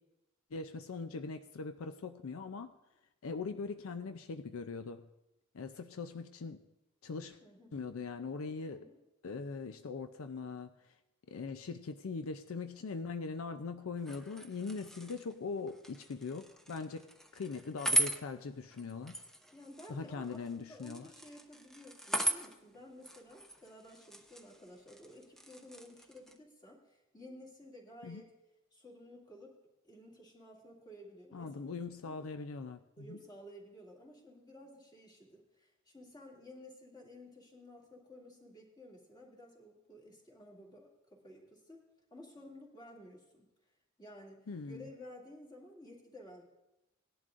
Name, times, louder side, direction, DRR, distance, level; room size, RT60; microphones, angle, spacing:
voice 1, 0.5-2.7 3.2-5.1 5.5-6.6 7.0-7.4 7.7-8.9 9.2-10.7 11.3-17.1 17.3-19.2 19.9-21.1 28.0-28.2 31.3-33.2 44.5-44.9, left 4 dB, 75° left, 9 dB, 0.5 m, -41 dB
voice 2, 7.4-7.8 8.7-9.0 19.5-28.3 28.7-29.6 29.8-31.7 32.0-32.2 33.0-43.5 44.0-46.5, left 1 dB, 20° left, -3 dB, 2.4 m, -54 dB
sound 1, 14.0-26.4, equal, ahead, 0.7 m, -39 dB
18.5 x 11.0 x 2.5 m, 0.93 s
head